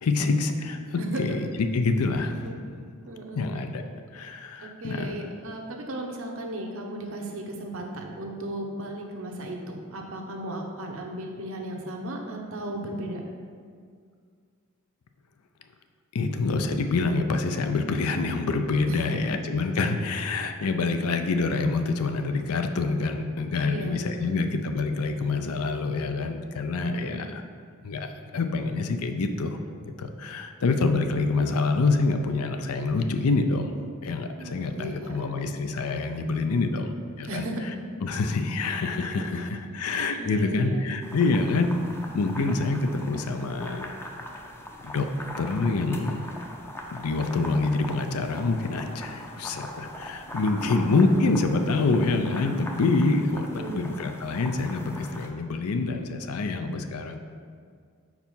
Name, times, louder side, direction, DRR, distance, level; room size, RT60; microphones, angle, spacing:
voice 1, 0.0-1.5 1.7-2.9 3.3-3.8 4.1-5.2 16.1-27.4 27.8-29.6 30.0-37.5 38.0-41.7 42.1-44.0 44.3-44.4 44.8-45.1 45.4-46.2 46.9-57.2, left 3 dB, 80° left, 7 dB, 0.5 m, -26 dB
voice 2, 0.9-1.4 2.4-2.5 3.1-3.4 4.6-13.2 18.0-18.1 18.9-19.4 23.6-24.4 26.9-27.3 34.4-35.3 37.2-37.7 40.2-41.0 50.5-51.3 53.3-53.8, right 1 dB, 60° right, 1 dB, 0.8 m, -36 dB
sound 1, 41.0-55.3, left 1 dB, 10° left, 0.5 m, -41 dB
4.8 x 4.6 x 5.5 m, 2.1 s
head